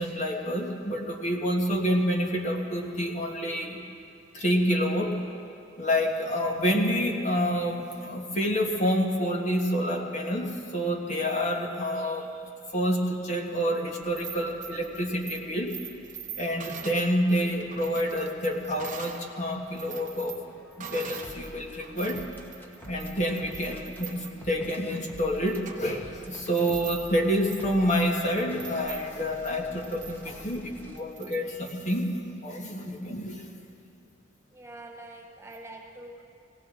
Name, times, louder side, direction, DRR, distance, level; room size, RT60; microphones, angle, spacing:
voice 1, 0.0-3.8 4.3-5.2 5.8-12.3 12.7-15.7 16.4-20.4 20.8-22.2 22.9-32.1 32.4-33.4, equal, 35° left, 1 dB, 1.4 m, -28 dB
sound 1, 14.0-19.3 19.6-21.4 21.7-32.0, right 8 dB, 40° right, 1.1 m, -44 dB
sound 2, 19.8-31.0, right 1 dB, 10° left, 1.0 m, -48 dB
voice 2, 34.5-36.2, right 2 dB, 15° right, 1 dB, 0.6 m, -45 dB
18.5 x 16.5 x 3.7 m, 2.7 s
head